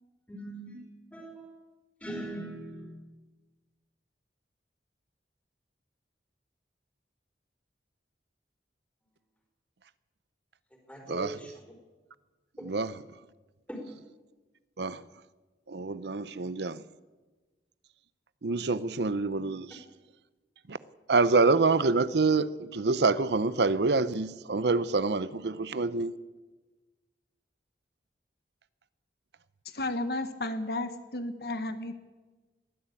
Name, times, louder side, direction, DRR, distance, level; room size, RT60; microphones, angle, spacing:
voice 1, 0.3-0.8 1.1-1.5 2.0-3.0 10.9-11.5 12.6-12.7 13.7-13.8, right 1 dB, 10° left, 4.7 m, -40 dB
voice 2, 11.1-11.4 12.6-13.0 14.8-15.0 15.7-16.8 18.4-19.8 20.7-20.8 21.1-26.1, right 3 dB, 75° right, 0.7 m, -26 dB
voice 3, 29.6-31.9, left 2 dB, 60° left, 1.3 m, -33 dB
21.5 x 14.5 x 8.5 m
head